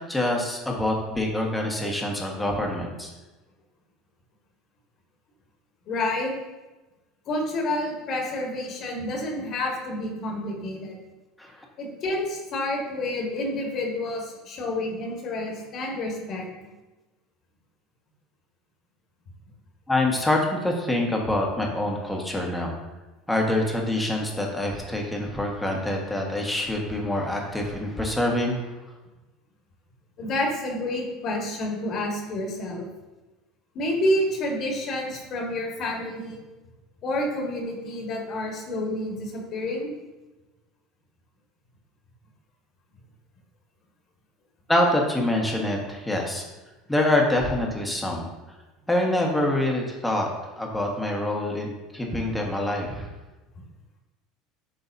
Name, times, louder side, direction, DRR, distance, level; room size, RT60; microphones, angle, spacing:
voice 1, 0.1-3.1 11.4-11.6 19.9-22.8 23.3-28.6 44.7-46.4 46.9-48.3 48.9-50.3 50.6-53.1, left 1 dB, 5° left, 0 dB, 1.4 m, -25 dB
voice 2, 5.9-6.3 7.3-11.0 11.8-16.4 30.2-32.9 33.8-36.4 37.0-39.9, left 1 dB, 50° left, -1 dB, 1.7 m, -29 dB
11.0 x 3.9 x 2.7 m, 1.1 s
supercardioid pair, 105°, 0 cm